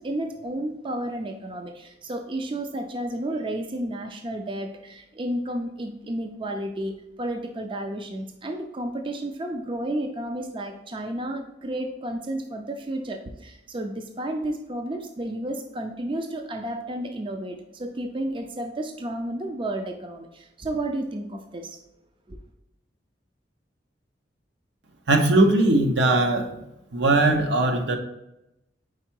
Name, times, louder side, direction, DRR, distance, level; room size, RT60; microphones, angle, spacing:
voice 1, 0.0-21.8 22.3-22.4, right 1 dB, 30° right, 4 dB, 0.4 m, -32 dB
voice 2, 25.1-26.6 26.9-28.0, right 2 dB, 70° right, 5 dB, 0.8 m, -20 dB
4.8 x 4.4 x 4.5 m, 0.87 s
head